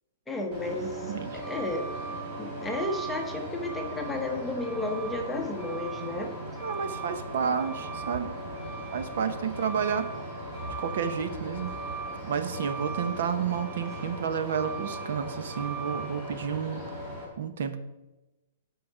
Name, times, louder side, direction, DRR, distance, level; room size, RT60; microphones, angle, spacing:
voice 1, 0.3-1.9 2.4-6.3, left 2 dB, 5° left, 2 dB, 0.8 m, -33 dB
Truck, 0.5-17.2, right 2 dB, 25° right, 2.9 m, -37 dB
voice 2, 1.0-1.4 6.6-8.4 8.9-10.1 10.8-11.7 12.2-16.8 17.4-17.8, right 7 dB, 60° right, 10 dB, 0.8 m, -30 dB
12.0 x 4.7 x 4.9 m, 1.0 s
hypercardioid pair, 165°, 0 cm